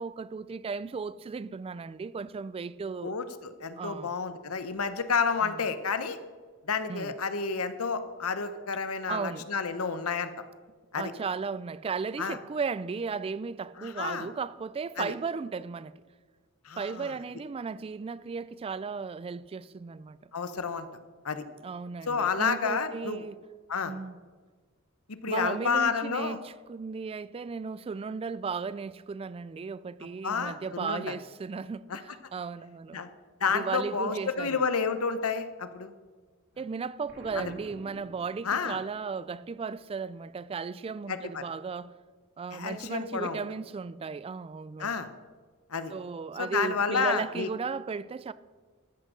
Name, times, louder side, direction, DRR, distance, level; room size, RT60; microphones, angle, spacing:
voice 1, 0.0-3.2 3.8-4.1 5.4-5.6 6.9-7.1 9.1-9.5 10.9-15.9 16.8-20.3 21.6-23.4 23.9-24.2 25.3-33.0 33.5-34.6 36.6-41.9 42.4-45.1 45.9-48.3, right 5 dB, 25° right, 0.3 m, -35 dB
voice 2, 3.0-6.2 6.7-10.3 10.9-11.1 12.2-12.4 13.8-14.3 15.0-15.1 16.6-17.1 20.3-20.9 21.2-21.4 22.1-23.3 23.7-23.9 25.1-26.4 30.2-31.1 31.9-32.0 32.9-33.1 33.4-35.9 37.3-37.5 38.4-38.8 41.1-41.4 42.5-43.4 44.8-45.1 45.7-45.9 46.4-47.5, left 5 dB, 90° left, 0.9 m, -30 dB
Explosion, 37.1-38.9, right 1 dB, 60° right, 3.1 m, -49 dB
13.5 x 6.1 x 6.6 m
head